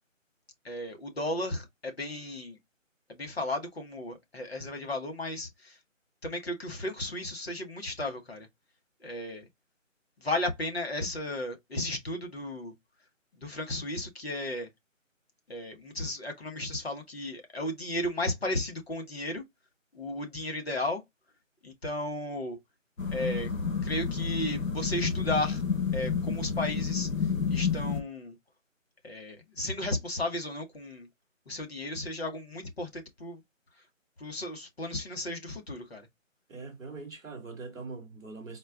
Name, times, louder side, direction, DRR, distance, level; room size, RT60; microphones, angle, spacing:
voice 1, 0.6-2.6 3.1-5.8 6.2-8.5 9.0-9.5 10.2-12.7 13.4-14.7 15.5-19.4 19.9-21.0 21.6-22.6 23.1-23.5 23.8-25.6 25.9-27.1 27.5-28.3 29.0-31.1 31.5-33.4 34.2-36.1, left 1 dB, 50° left, 1.3 m, -34 dB
sound 1, 23.0-28.0, left 5 dB, 85° left, 1.3 m, -30 dB
voice 2, 36.5-38.6, right 3 dB, ahead, 1.0 m, -42 dB
4.3 x 2.4 x 3.6 m
figure-of-eight pair, 165°, 39 cm